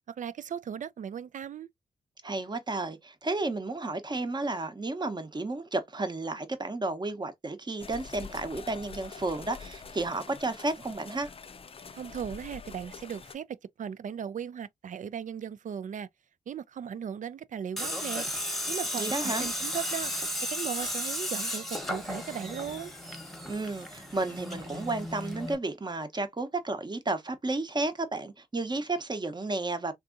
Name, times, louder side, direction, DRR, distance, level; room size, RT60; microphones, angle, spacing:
voice 1, 0.1-1.7 11.9-16.1 16.5-18.3 18.7-20.1 20.4-22.9, right 8 dB, 55° right, 0.4 m, -37 dB
voice 2, 2.2-11.3 18.9-19.5 23.5-29.9, right 2 dB, 30° right, 0.8 m, -32 dB
sound 1, 7.8-13.3, left 5 dB, 35° left, 0.5 m, -45 dB
Tools, 17.8-25.5, left 1 dB, ahead, 1.0 m, -34 dB
3.5 x 2.7 x 2.4 m
cardioid pair, 70°, 16 cm